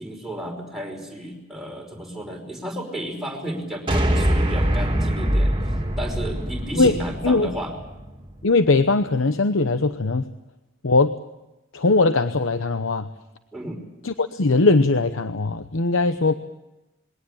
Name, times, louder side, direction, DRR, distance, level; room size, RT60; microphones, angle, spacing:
voice 1, 0.0-5.6 6.0-7.7 13.5-13.8, equal, ahead, -1 dB, 5.4 m, -32 dB
sound 1, 3.9-8.3, equal, 25° right, 2.9 m, -23 dB
voice 2, 8.4-10.3 10.8-11.1 11.7-13.0 14.0-16.3, left 3 dB, 90° left, 10 dB, 0.9 m, -20 dB
22.0 x 18.0 x 8.8 m, 0.99 s
head